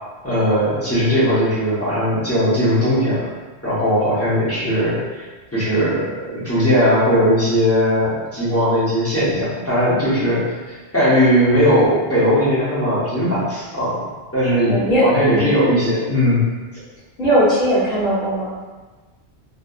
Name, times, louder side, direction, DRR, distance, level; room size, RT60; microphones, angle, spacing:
voice 1, 0.2-3.3 3.6-5.2 5.5-14.0 14.3-14.7 15.0-16.4, equal, 15° left, -11 dB, 0.7 m, -18 dB
voice 2, 14.7-15.5 17.2-18.5, equal, 50° left, -12 dB, 1.1 m, -18 dB
2.7 x 2.2 x 2.3 m, 1.3 s
omnidirectional pair, 1.1 m